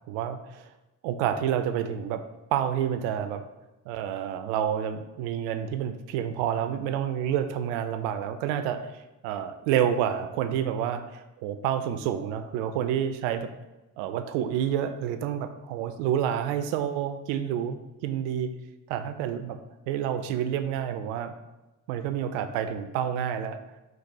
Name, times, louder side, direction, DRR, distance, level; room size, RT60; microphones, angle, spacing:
voice 1, 0.1-0.7 1.0-2.2 2.5-3.4 3.9-13.5 14.0-18.5 18.9-19.6 19.9-21.3 21.9-23.6, right 9 dB, 70° right, 9 dB, 0.5 m, -29 dB
3.9 x 2.5 x 3.5 m, 1.0 s
hypercardioid pair, 45°, 46 cm